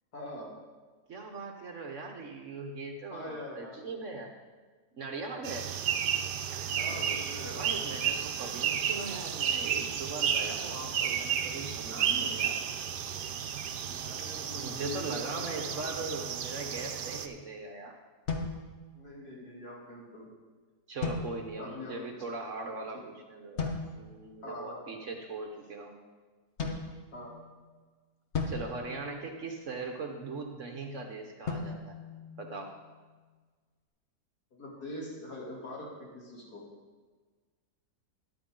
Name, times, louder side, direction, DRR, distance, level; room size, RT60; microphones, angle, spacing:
voice 1, 0.1-0.5 3.1-3.8 6.7-7.6 10.6-10.9 13.9-15.9 18.9-20.3 21.6-22.0 22.9-23.0 24.4-24.9 27.1-27.4 34.5-36.6, left 1 dB, 65° left, -4 dB, 3.4 m, -43 dB
voice 2, 1.1-4.3 4.9-5.7 7.5-12.6 13.7-13.8 14.5-18.0 20.9-26.0 28.5-32.0 32.4-32.8, right 3 dB, 50° right, 3 dB, 1.2 m, -40 dB
sound 1, 5.4-17.3, right 8 dB, 80° right, 1.3 m, -32 dB
sound 2, 18.3-19.3 21.0-21.8 23.6-24.2 26.6-27.6 28.3-29.8 31.5-33.0, left 4 dB, 45° left, 1.3 m, -37 dB
13.0 x 10.0 x 3.8 m, 1.4 s
omnidirectional pair, 1.8 m